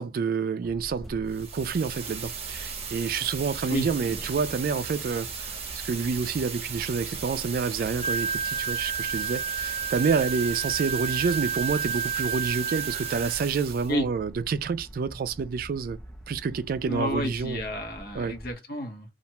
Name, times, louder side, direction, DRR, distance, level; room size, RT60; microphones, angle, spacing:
voice 1, 0.0-16.0 16.3-17.6 18.1-18.4, right 5 dB, 55° right, 0.3 m, -28 dB
sound 1, 0.6-18.6, equal, ahead, 0.5 m, -45 dB
sound 2, 1.3-13.9, right 6 dB, 35° right, 0.7 m, -37 dB
Wind instrument woodwind instrument, 8.0-13.5, right 6 dB, 30° left, 0.8 m, -31 dB
voice 2, 16.8-19.1, left 1 dB, 60° left, 0.9 m, -31 dB
2.4 x 2.2 x 2.8 m
head